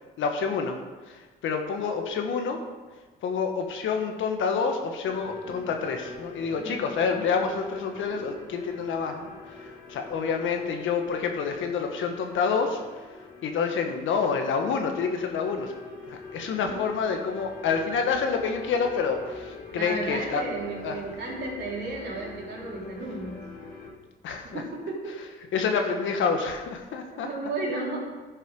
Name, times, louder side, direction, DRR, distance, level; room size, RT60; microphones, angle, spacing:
voice 1, 0.2-0.8 1.1-2.6 3.2-13.1 13.4-15.7 16.0-20.5 20.8-21.0 24.2-24.6 25.5-27.3, left 5 dB, 80° left, 4 dB, 1.4 m, -28 dB
sound 1, 5.0-23.9, left 3 dB, 50° left, 2.6 m, -44 dB
voice 2, 19.7-23.5 24.5-25.1 27.1-28.0, right 2 dB, 60° right, -4 dB, 3.5 m, -34 dB
11.0 x 6.6 x 5.3 m, 1.3 s
cardioid pair, 90°, 20 cm